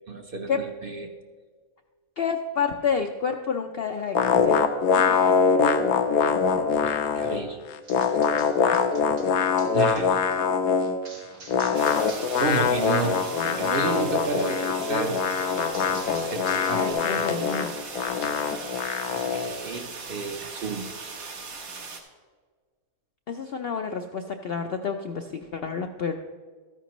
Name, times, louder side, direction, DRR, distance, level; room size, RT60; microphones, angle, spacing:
voice 1, 0.1-1.1 6.8-7.6 9.7-10.2 12.4-15.2 15.9-16.8 17.1-17.3 19.3-20.9, right 3 dB, 50° right, 4 dB, 0.8 m, -31 dB
voice 2, 2.2-4.6 4.9-5.3 8.7-8.8 16.7-17.7 23.3-26.1, left 6 dB, 65° left, 5 dB, 0.6 m, -29 dB
sound 1, 4.2-7.4 7.7-11.0 11.5-19.5, left 6 dB, 80° left, 1.1 m, -23 dB
sound 2, 7.8-10.0 11.0-12.6 12.9-13.3 14.4-16.9, right 2 dB, 90° right, 2.4 m, -47 dB
sound 3, 11.7-22.0, right 4 dB, 75° right, 1.6 m, -39 dB
13.0 x 10.0 x 3.0 m, 1.6 s
omnidirectional pair, 1.5 m